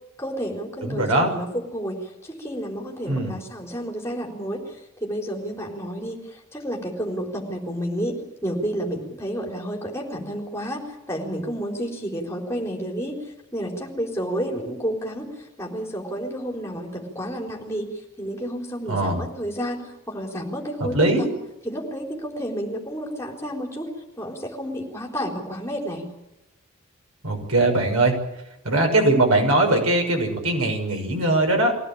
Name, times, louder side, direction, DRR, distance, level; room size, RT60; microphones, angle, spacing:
voice 1, 0.2-13.2 13.5-17.8 18.2-21.3 21.6-23.9 24.2-26.1, equal, 10° left, 0 dB, 4.2 m, -30 dB
voice 2, 0.8-1.3 3.1-3.3 18.9-19.2 20.8-21.3 27.2-28.1 28.6-31.8, right 2 dB, 85° right, 3 dB, 6.2 m, -21 dB
23.5 x 17.0 x 8.8 m, 0.91 s
head